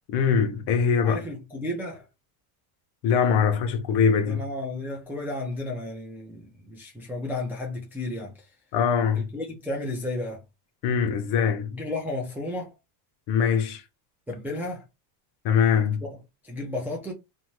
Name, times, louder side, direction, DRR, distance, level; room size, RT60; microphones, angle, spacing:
voice 1, 0.1-1.2 3.0-4.4 8.7-9.3 10.8-11.7 13.3-13.8 15.4-16.0, left 6 dB, 55° left, 0.8 m, -22 dB
voice 2, 1.0-2.1 4.3-8.3 9.2-10.4 11.7-12.7 14.3-14.8 16.0-16.1 16.4-17.1, left 2 dB, 5° right, 0.3 m, -33 dB
2.7 x 2.1 x 3.0 m
cardioid pair, 140°, 47 cm